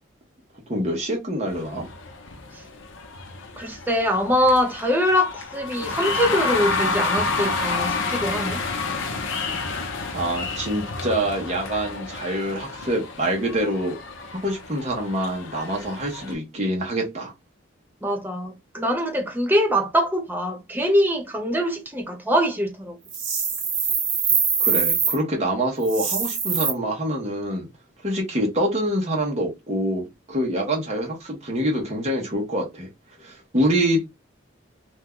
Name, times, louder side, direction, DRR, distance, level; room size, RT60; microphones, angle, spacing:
voice 1, 0.7-1.8 10.1-14.0 14.3-17.3 24.6-27.7 28.0-32.9 33.2-34.0, right 1 dB, 35° right, 1.0 m, -25 dB
sound 1, 1.5-16.3, left 3 dB, 75° left, 0.7 m, -30 dB
voice 2, 3.6-8.6 18.0-23.0, equal, 10° right, 0.5 m, -23 dB
sound 2, 23.1-25.2 25.8-26.7, right 6 dB, 70° right, 1.5 m, -23 dB
2.8 x 2.2 x 3.6 m
head